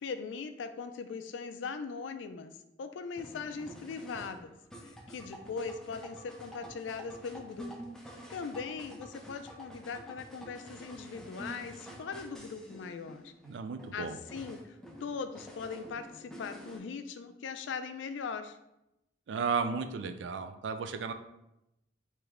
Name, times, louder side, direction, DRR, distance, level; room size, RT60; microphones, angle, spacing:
voice 1, 0.0-2.5 2.8-4.5 4.8-7.7 8.3-13.3 13.9-14.8 15.0-18.6, left 5 dB, 80° left, 9 dB, 0.4 m, -40 dB
sound 1, 3.2-16.8, equal, 5° left, 0.5 m, -48 dB
voice 2, 13.4-14.2 19.3-21.1, right 5 dB, 75° right, 9 dB, 0.4 m, -34 dB
3.3 x 3.0 x 3.5 m, 0.87 s
head